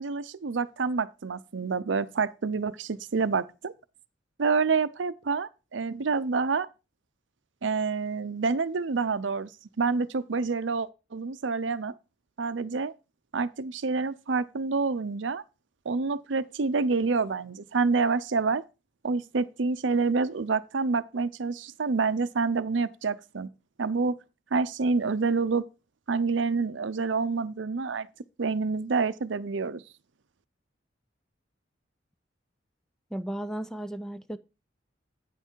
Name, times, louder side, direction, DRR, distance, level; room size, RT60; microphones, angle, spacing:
voice 1, 0.0-3.7 4.4-6.7 7.6-9.5 9.8-11.9 12.4-12.9 13.3-15.4 15.9-18.6 19.0-23.5 23.8-24.2 24.5-25.6 26.1-28.1 28.4-29.8, right 4 dB, 70° right, 0.6 m, -27 dB
voice 2, 33.1-34.4, right 1 dB, 5° left, 0.4 m, -34 dB
9.2 x 5.7 x 4.5 m
head